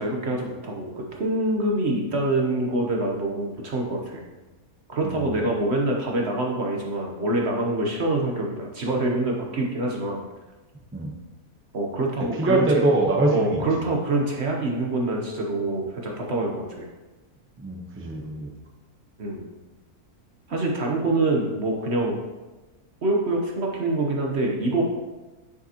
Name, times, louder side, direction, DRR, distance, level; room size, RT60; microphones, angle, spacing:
voice 1, 0.0-4.2 4.9-10.2 11.7-12.8 13.3-16.9 19.2-19.4 20.5-22.2 23.0-24.8, right 2 dB, 50° right, 0 dB, 1.0 m, -25 dB
voice 2, 12.4-13.6 17.6-18.5, right 2 dB, 10° right, -1 dB, 0.6 m, -23 dB
7.6 x 6.7 x 2.9 m, 1.2 s
omnidirectional pair, 1.6 m